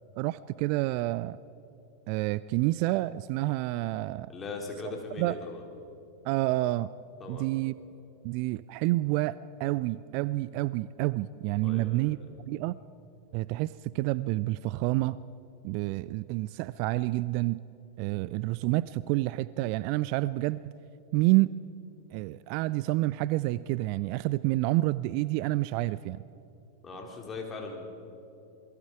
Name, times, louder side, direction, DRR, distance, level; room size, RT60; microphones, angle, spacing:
voice 1, 0.2-1.4 2.1-4.3 5.2-5.4 6.2-6.9 7.3-7.7 8.2-12.2 12.5-12.8 13.3-15.2 15.6-17.6 18.0-20.7 21.1-21.5 22.1-26.2, right 18 dB, 45° right, 19 dB, 0.4 m, -28 dB
voice 2, 4.3-5.6 7.2-7.5 11.6-12.3 26.8-27.8, left 3 dB, 20° left, 1 dB, 3.9 m, -39 dB
27.5 x 21.5 x 4.8 m, 2.7 s
figure-of-eight pair, 90°, 0 cm